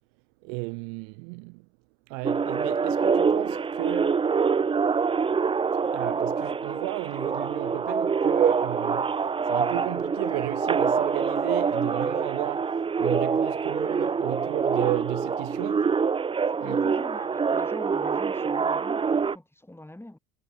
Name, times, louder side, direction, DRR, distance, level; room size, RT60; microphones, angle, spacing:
voice 1, 0.4-1.7 2.1-4.2 5.9-9.2 9.4-15.9 16.6-16.8, right 36 dB, 55° right, 0.9 m, -33 dB
sound 1, 2.2-19.4, right 5 dB, 10° right, 0.6 m, -25 dB
voice 2, 16.5-20.2, left 1 dB, 5° left, 6.0 m, -44 dB
figure-of-eight pair, 65°, 46 cm